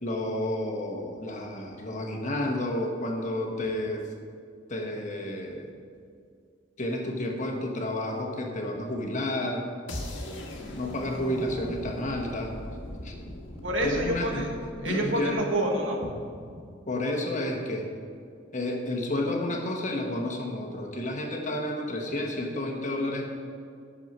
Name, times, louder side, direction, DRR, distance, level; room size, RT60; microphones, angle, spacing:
voice 1, 0.0-4.1 4.7-5.7 6.8-9.6 10.8-12.5 13.0-13.1 13.8-14.5 14.8-15.4 16.9-17.9 18.5-23.3, left 1 dB, 40° left, 1 dB, 1.3 m, -31 dB
sound 1, 9.9-15.9, left 1 dB, 75° left, 1.5 m, -40 dB
voice 2, 13.6-14.5 14.8-16.4, right 1 dB, 85° right, 0 dB, 1.7 m, -28 dB
11.0 x 6.6 x 5.5 m, 2.3 s
head